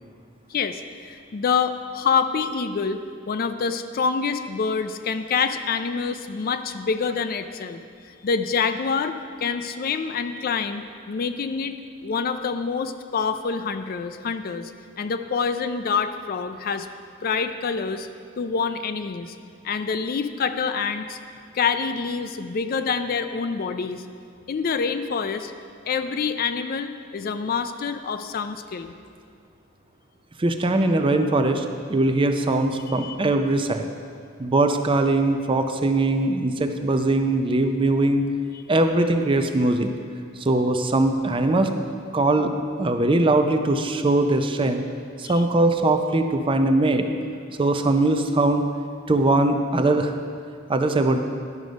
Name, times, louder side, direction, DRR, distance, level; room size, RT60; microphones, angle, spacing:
voice 1, 0.5-3.0 3.3-7.8 8.1-9.2 9.4-11.8 12.0-14.7 15.0-16.9 17.2-18.1 18.4-19.3 19.6-21.2 21.5-24.0 24.5-25.5 25.9-28.9 33.0-33.2 45.2-45.4, left 5 dB, 45° left, 9 dB, 0.4 m, -26 dB
voice 2, 30.4-33.9 34.4-38.3 38.7-39.9 40.4-41.7 42.1-42.5 42.8-44.8 45.2-47.0 47.6-48.7 49.1-50.1 50.7-51.2, right 2 dB, 25° right, 6 dB, 0.4 m, -21 dB
11.0 x 6.3 x 5.2 m, 2.2 s
head